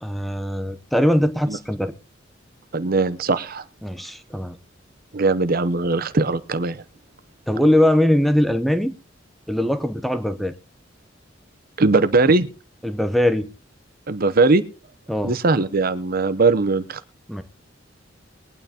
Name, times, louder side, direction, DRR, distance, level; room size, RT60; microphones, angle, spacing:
voice 1, 0.0-1.9 3.8-4.6 7.5-8.9 9.5-10.5 12.8-13.5 15.1-15.3 17.3-17.4, left 1 dB, ahead, 0.7 m, -21 dB
voice 2, 2.7-3.6 5.1-6.8 11.8-12.5 14.1-14.6 15.2-17.0, right 3 dB, 50° right, 0.7 m, -19 dB
21.5 x 9.1 x 2.8 m
head